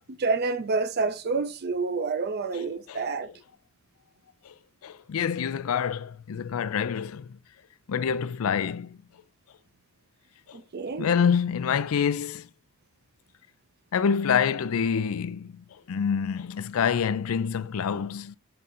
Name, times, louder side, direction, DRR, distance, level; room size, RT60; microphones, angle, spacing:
voice 1, 0.2-3.3 10.5-11.1, right 4 dB, 50° right, 0.5 m, -28 dB
voice 2, 2.5-3.0 4.4-4.5 4.8-7.4 7.9-9.0 10.5-10.6 11.0-12.5 13.9-18.4, left 7 dB, 90° left, 0.4 m, -27 dB
6.6 x 3.7 x 4.2 m
head